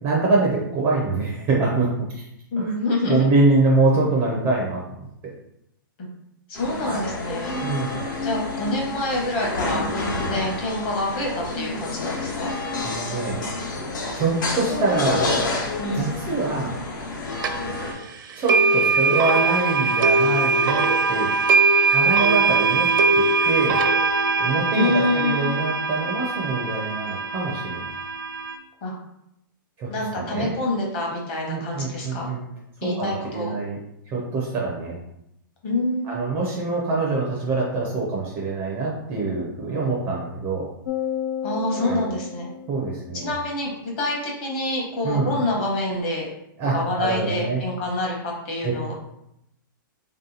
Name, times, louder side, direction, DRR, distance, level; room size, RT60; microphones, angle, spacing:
voice 1, 0.0-2.2 2.6-2.7 3.0-4.8 6.8-7.0 7.6-8.0 12.7-13.4 14.1-15.3 15.9-16.8 18.4-21.3 21.9-22.9 23.1-23.8 24.4-27.8 29.8-30.5 31.5-32.4 32.8-33.8 34.1-35.0 36.0-40.7 41.8-42.1 42.7-43.3 45.0-45.3 46.6-47.6 48.6-48.8, right 3 dB, 15° right, -3 dB, 0.4 m, -24 dB
voice 2, 2.5-3.2 6.0-6.1 6.5-7.6 8.2-9.9 10.2-12.5 15.8-16.0 24.7-25.6 28.8-28.9 29.9-32.3 32.8-33.6 35.6-36.2 41.4-42.5 43.1-46.3 46.7-48.2 48.4-48.9, left 2 dB, 30° left, -1 dB, 0.9 m, -26 dB
sound 1, 6.5-17.9, left 2 dB, 60° left, 1.0 m, -29 dB
sound 2, 17.4-17.5 18.5-28.5, right 4 dB, 70° right, 0.5 m, -21 dB
sound 3, 40.8-43.4, left 10 dB, 80° left, 0.4 m, -32 dB
3.3 x 2.8 x 3.8 m, 0.81 s
hypercardioid pair, 175°, 12 cm